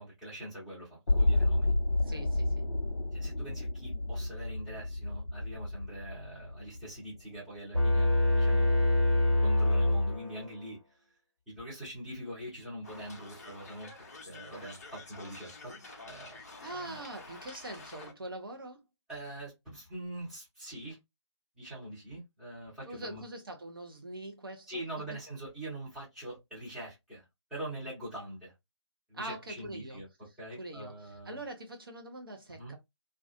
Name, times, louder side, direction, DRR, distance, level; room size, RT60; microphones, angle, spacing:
voice 1, 0.0-1.7 2.1-2.2 3.1-8.1 8.3-8.7 9.4-10.8 11.5-13.9 14.2-15.7 16.0-16.4 16.8-17.0 19.1-21.0 21.6-23.2 24.7-27.2 27.5-28.5 29.1-30.1 30.4-31.4 32.6-32.8, right 1 dB, ahead, 0.8 m, -43 dB
sound 1, 1.1-7.0 7.4-7.5, left 2 dB, 65° left, 0.8 m, -31 dB
voice 2, 2.0-2.7 16.4-18.8 22.9-24.8 29.1-30.0 30.6-32.8, right 1 dB, 50° right, 0.7 m, -43 dB
sound 2, 7.7-10.7, left 1 dB, 90° right, 1.5 m, -25 dB
sound 3, 12.8-18.1, left 3 dB, 35° left, 0.6 m, -49 dB
2.3 x 2.3 x 2.4 m
figure-of-eight pair, 150°, 15 cm